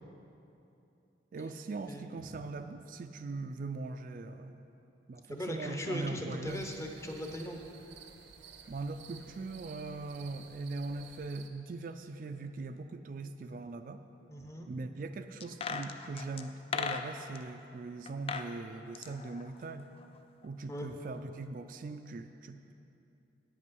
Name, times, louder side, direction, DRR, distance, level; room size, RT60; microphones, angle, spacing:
voice 1, 1.3-4.7 5.1-6.7 8.7-14.0 14.7-19.9 20.4-22.7, right 3 dB, 50° right, 8 dB, 0.3 m, -41 dB
voice 2, 5.3-7.6 14.3-14.7 20.7-20.9, equal, 15° left, 3 dB, 0.8 m, -39 dB
sound 1, 6.5-11.5, right 6 dB, 85° right, 0.7 m, -54 dB
sound 2, 15.4-17.4 18.1-18.5 18.8-20.2 20.4-20.5, left 5 dB, 30° left, 0.4 m, -38 dB
8.8 x 8.4 x 5.3 m, 2.8 s
head